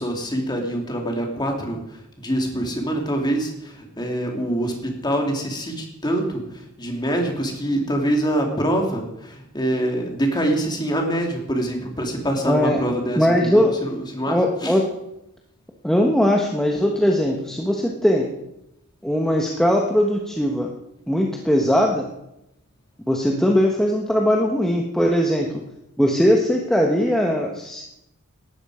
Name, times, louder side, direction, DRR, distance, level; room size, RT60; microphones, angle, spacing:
voice 1, 0.0-14.8, right 1 dB, 20° left, 2 dB, 3.0 m, -25 dB
voice 2, 12.5-12.8 13.2-13.7 14.3-14.8 15.8-18.3 19.0-20.7 21.1-22.1 23.1-25.5 26.0-27.8, equal, ahead, 0 dB, 1.3 m, -20 dB
18.5 x 13.0 x 5.0 m, 0.86 s
head